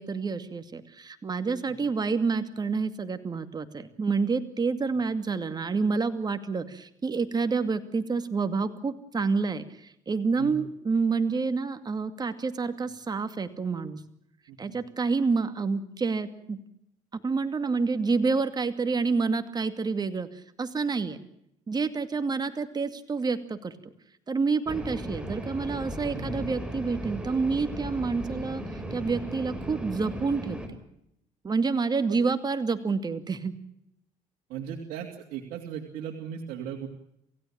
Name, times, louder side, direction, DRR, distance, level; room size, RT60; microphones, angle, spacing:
voice 1, 0.0-14.0 14.6-16.6 17.1-20.3 20.6-21.2 21.7-23.7 24.3-28.6 28.9-30.6 31.4-33.5, right 4 dB, 30° right, 9 dB, 2.4 m, -28 dB
voice 2, 14.5-14.8 26.1-26.5 32.1-32.2 34.5-36.9, right 8 dB, 80° right, 1 dB, 2.8 m, -37 dB
sound 1, 24.7-30.7, equal, 5° right, 5.3 m, -36 dB
28.0 x 16.5 x 8.9 m, 0.78 s
cardioid pair, 90°, 14 cm